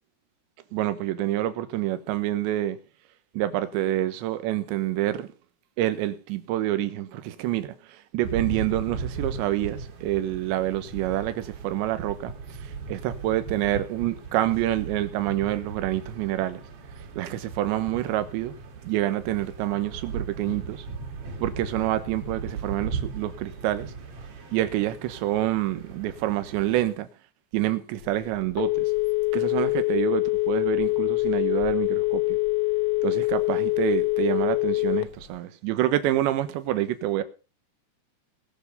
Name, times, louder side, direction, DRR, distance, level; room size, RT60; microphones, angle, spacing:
voice 1, 0.7-2.8 3.3-5.3 5.8-12.3 12.9-16.6 17.2-18.5 18.8-20.9 21.4-23.9 24.5-27.1 27.5-28.8 29.3-32.4 33.0-37.2, right 14 dB, 80° right, 3.3 m, -27 dB
sound 1, 8.2-26.9, right 5 dB, 55° right, 4.1 m, -37 dB
Telephone, 28.0-35.4, left 23 dB, 90° left, 3.4 m, -24 dB
20.0 x 7.1 x 5.4 m
omnidirectional pair, 5.3 m